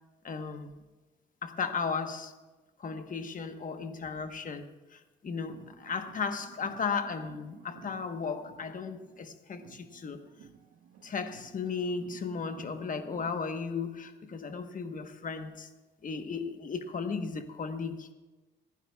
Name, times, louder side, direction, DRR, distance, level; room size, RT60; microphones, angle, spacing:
voice 1, 0.2-0.7 1.4-2.3 2.8-10.2 11.0-15.7 16.0-18.1, left 5 dB, 40° left, 7 dB, 1.2 m, -35 dB
sound 1, 5.3-9.2 9.5-13.5, right 7 dB, 80° right, 1.1 m, -54 dB
27.5 x 9.8 x 2.4 m, 1.2 s
cardioid pair, 90°, 20 cm